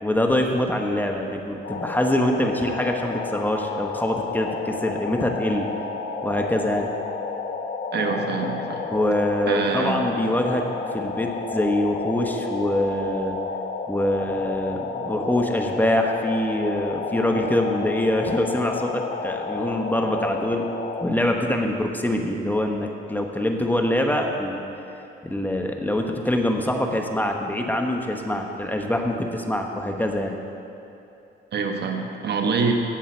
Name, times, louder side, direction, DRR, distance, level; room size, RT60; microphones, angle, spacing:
voice 1, 0.0-5.7 6.2-6.9 8.9-13.4 13.9-20.7 21.0-24.6 25.2-30.4, left 1 dB, 10° left, 2 dB, 1.0 m, -24 dB
sound 1, 1.6-21.0, left 4 dB, 50° left, 0.9 m, -31 dB
voice 2, 7.9-8.8 9.5-10.0 31.5-32.7, right 5 dB, 60° right, 3 dB, 1.2 m, -25 dB
16.0 x 7.3 x 4.4 m, 2.7 s
cardioid pair, 90°, 20 cm